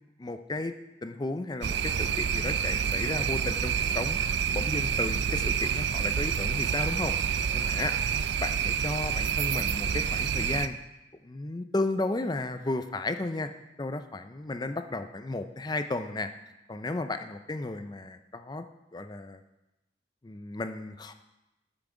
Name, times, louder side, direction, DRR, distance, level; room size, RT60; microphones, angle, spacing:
voice 1, 0.2-0.8 1.0-4.2 4.5-7.9 8.4-10.8 11.2-13.5 13.8-16.3 16.7-18.7 18.9-19.4 20.2-21.1, left 2 dB, 25° left, 9 dB, 0.4 m, -34 dB
sound 1, 1.6-10.7, right 7 dB, 70° right, 0.4 m, -28 dB
10.5 x 6.0 x 5.0 m, 0.98 s
head